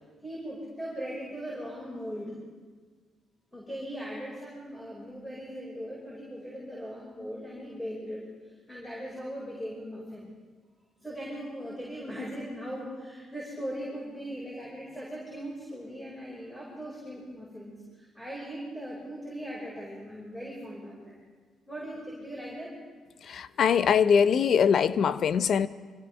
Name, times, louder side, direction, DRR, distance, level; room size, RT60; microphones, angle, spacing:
voice 1, 0.0-2.4 3.5-8.2 8.7-10.3 11.0-21.2 21.7-22.7, equal, 5° left, -5 dB, 5.3 m, -39 dB
voice 2, 23.2-25.7, left 7 dB, 60° left, 15 dB, 0.6 m, -22 dB
25.0 x 16.0 x 3.5 m, 1.5 s
cardioid pair, 90°, 0 cm